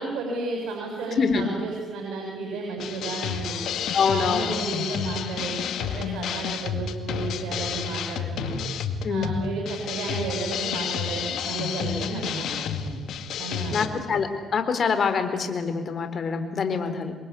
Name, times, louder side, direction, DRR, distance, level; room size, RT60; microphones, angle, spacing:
voice 1, 0.0-3.6 4.0-8.6 9.1-13.0 13.4-14.0, right 3 dB, 85° right, 0 dB, 7.0 m, -33 dB
voice 2, 1.2-1.5 3.9-4.5 9.0-9.3 13.7-17.1, left 5 dB, 50° left, 9 dB, 4.1 m, -25 dB
sound 1, 2.8-13.9, left 7 dB, 75° left, 2.2 m, -30 dB
28.5 x 23.0 x 8.4 m, 1.5 s
cardioid pair, 90°, 0 cm